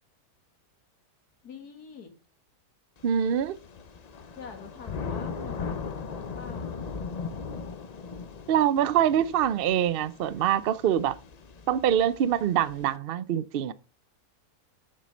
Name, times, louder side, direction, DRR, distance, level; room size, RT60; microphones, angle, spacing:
voice 1, 1.4-2.1 4.3-6.9, left 5 dB, 85° left, 2.3 m, -45 dB
Thunder / Rain, 3.0-12.9, left 5 dB, 50° left, 0.4 m, -39 dB
voice 2, 3.0-3.6 8.5-11.2 11.7-13.7, right 10 dB, 75° right, 0.5 m, -24 dB
7.6 x 6.6 x 5.2 m
omnidirectional pair, 1.6 m